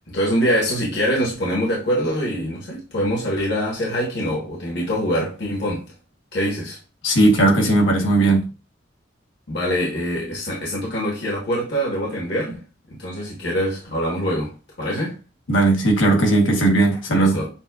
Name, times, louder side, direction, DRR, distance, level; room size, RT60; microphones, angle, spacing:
voice 1, 0.1-5.9 6.3-6.8 9.5-12.6 13.0-15.2 17.1-17.5, equal, 60° left, 1.4 m, -24 dB
voice 2, 7.0-8.5 15.5-17.4, right 2 dB, 80° left, 1.2 m, -17 dB
7.2 x 2.4 x 2.4 m
head